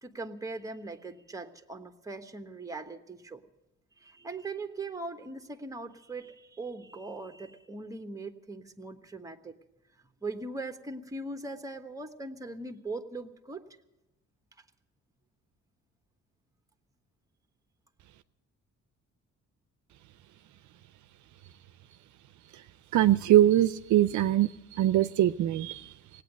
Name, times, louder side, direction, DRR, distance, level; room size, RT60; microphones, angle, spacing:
voice 1, 0.0-3.4 4.0-9.5 10.2-13.7, right 3 dB, 10° right, 6 dB, 1.2 m, -40 dB
voice 2, 22.9-24.5 24.8-25.9, right 13 dB, 70° right, 12 dB, 0.6 m, -22 dB
17.5 x 8.9 x 9.3 m, 0.93 s
cardioid pair, 90°, 30 cm